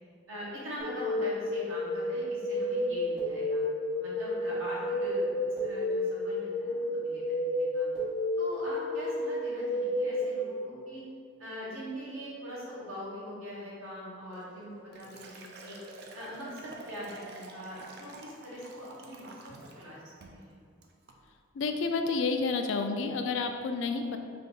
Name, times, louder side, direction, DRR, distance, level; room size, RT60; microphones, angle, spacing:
voice 1, 0.3-3.6 4.0-7.9 8.4-11.0 11.4-14.7 14.9-15.8 16.1-19.3 19.7-20.0 20.3-20.5, equal, 80° right, -7 dB, 1.3 m, -42 dB
sound 1, 0.8-10.3, left 1 dB, ahead, 1.4 m, -31 dB
Liquid, 14.3-19.9 20.2-20.5 20.8-21.2, right 3 dB, 50° right, 0.4 m, -48 dB
voice 2, 21.5-24.2, left 4 dB, 65° left, 6 dB, 0.3 m, -30 dB
3.4 x 2.7 x 3.9 m, 2.2 s
head